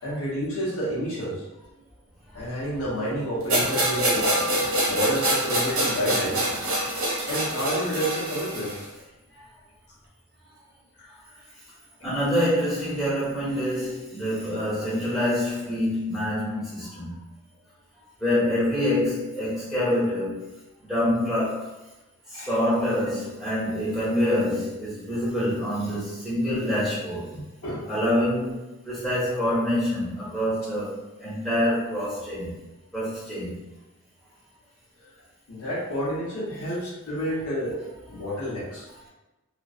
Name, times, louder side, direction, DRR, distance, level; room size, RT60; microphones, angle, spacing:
voice 1, 0.0-1.4 2.3-4.3 4.8-6.5 7.3-8.9 22.3-22.5 27.3-28.0 35.5-38.9, equal, 75° left, -6 dB, 0.9 m, -30 dB
sound 1, 3.5-8.8, right 1 dB, 80° right, 1.1 m, -25 dB
voice 2, 12.0-17.2 18.2-20.4 20.9-21.7 22.3-27.3 27.9-32.5 32.9-33.6, left 1 dB, ahead, -10 dB, 1.1 m, -26 dB
2.5 x 2.3 x 2.4 m, 1.0 s
head